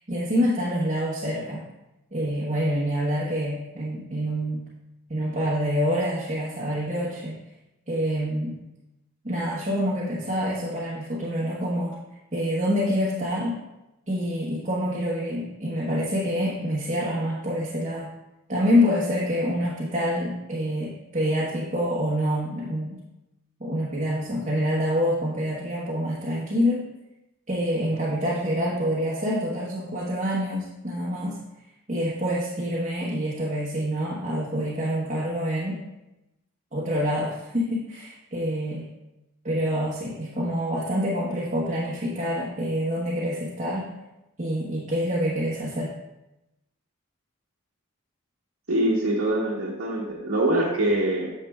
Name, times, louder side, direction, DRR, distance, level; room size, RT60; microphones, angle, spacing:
voice 1, 0.1-1.6 2.1-4.6 5.1-7.4 7.9-8.6 9.2-12.0 12.3-13.6 14.1-18.1 18.5-23.0 23.6-26.8 27.5-31.4 31.9-35.8 36.7-38.9 39.4-43.9 44.4-45.9, equal, 35° right, -6 dB, 1.2 m, -26 dB
voice 2, 48.7-51.3, right 1 dB, 65° right, -5 dB, 1.1 m, -24 dB
9.3 x 6.7 x 2.4 m, 0.95 s
head